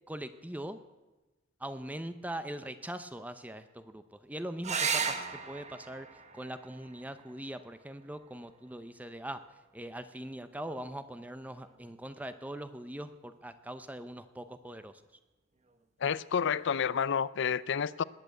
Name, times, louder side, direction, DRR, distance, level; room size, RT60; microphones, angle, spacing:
voice 1, 0.1-0.8 1.6-6.1 6.3-9.4 9.7-15.0, right 1 dB, 10° right, 0.7 m, -41 dB
sound 1, 4.6-9.7 11.5-12.2 15.6-15.7 16.1-16.2, right 5 dB, 35° right, 1.2 m, -37 dB
voice 2, 16.0-18.0, left 7 dB, 60° left, 0.5 m, -29 dB
20.5 x 8.8 x 8.0 m
head